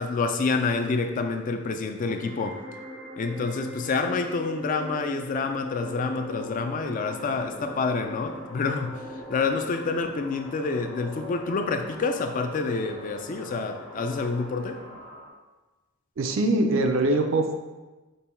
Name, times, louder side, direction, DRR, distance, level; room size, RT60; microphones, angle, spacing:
voice 1, 0.0-2.6 3.2-14.8, left 4 dB, 40° left, 6 dB, 0.3 m, -28 dB
sound 1, 2.0-10.0, left 1 dB, 65° left, 1.4 m, -41 dB
sound 2, 5.5-15.3, left 2 dB, 85° left, 0.9 m, -44 dB
voice 2, 16.2-17.5, right 2 dB, 70° right, 5 dB, 0.5 m, -23 dB
5.3 x 2.2 x 4.3 m, 1.2 s
head